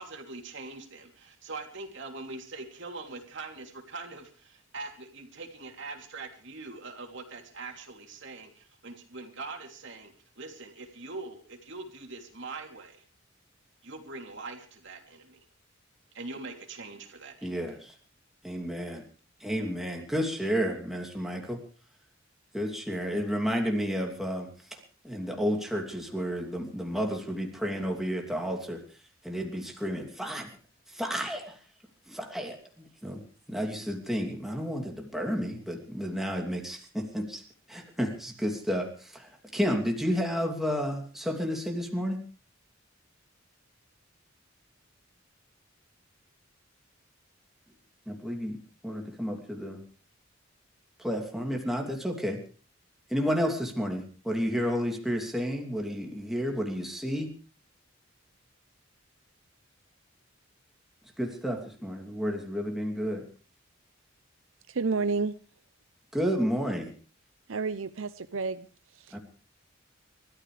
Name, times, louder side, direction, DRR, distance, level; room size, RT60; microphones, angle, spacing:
voice 1, 0.0-13.0 13.8-15.4 16.1-17.7, right 3 dB, 65° right, 3 dB, 3.1 m, -42 dB
voice 2, 17.4-17.9 18.4-19.0 19.4-21.6 22.5-24.5 25.0-28.8 29.2-30.5 30.9-31.6 32.1-33.2 33.5-37.4 37.7-42.2 48.1-48.6 48.8-49.8 51.0-52.4 53.1-57.3 61.2-63.2 66.1-66.9 69.1-69.2, equal, ahead, 1 dB, 2.8 m, -31 dB
voice 3, 64.7-65.4 67.5-68.7 68.9-69.2, right 4 dB, 85° right, 11 dB, 0.7 m, -30 dB
30.0 x 13.5 x 3.4 m, 0.39 s
head